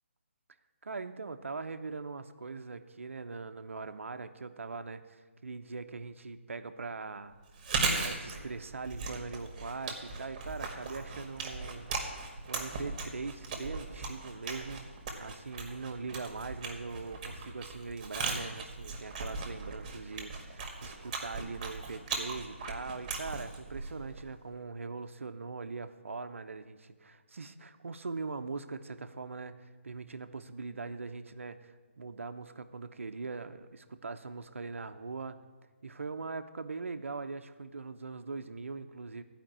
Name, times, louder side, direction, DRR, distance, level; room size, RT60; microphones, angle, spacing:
voice 1, 0.8-7.4 8.0-12.2 12.5-35.4 35.8-39.2, right 4 dB, 75° right, 10 dB, 0.8 m, -41 dB
Chewing mastication, 7.5-24.4, right 4 dB, 30° right, 1.8 m, -38 dB
14.5 x 5.2 x 8.8 m, 1.4 s
hypercardioid pair, 155°, 7 cm